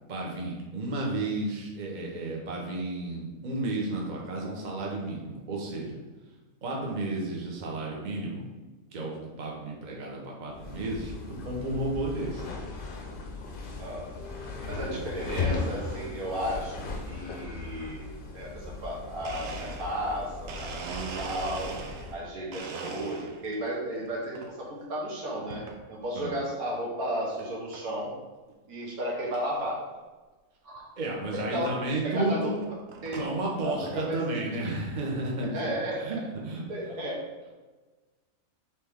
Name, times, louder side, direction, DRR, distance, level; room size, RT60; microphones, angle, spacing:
voice 1, 0.1-6.0 6.6-8.4 8.9-9.1 9.4-11.1 11.4-12.4 14.9-15.0 26.2-26.3 31.0-32.6 33.1-35.6 36.0-36.2 36.4-36.6, right 2 dB, 40° right, -2 dB, 0.8 m, -32 dB
sound 1, 10.5-22.2, left 4 dB, 55° left, 0.6 m, -37 dB
voice 2, 13.8-14.1 14.7-20.9 21.2-21.7 22.1-28.1 28.7-29.9 30.6-30.9 31.3-31.7 32.0-32.5 33.0-33.2 33.6-34.2 35.5-36.0 36.7-37.2, equal, 85° right, -3 dB, 1.6 m, -34 dB
Domestic sounds home sounds, 18.9-19.0 19.2-22.2 22.5-23.5 24.0-24.5 25.5-25.8 26.4-26.5 27.4-27.5 27.7-28.1 28.5-28.6 28.8-28.9 29.3-29.4 30.8-30.9 31.6-31.8 32.4-33.4, right 5 dB, 65° right, 0.7 m, -40 dB
4.3 x 3.3 x 3.5 m, 1.2 s
omnidirectional pair, 1.5 m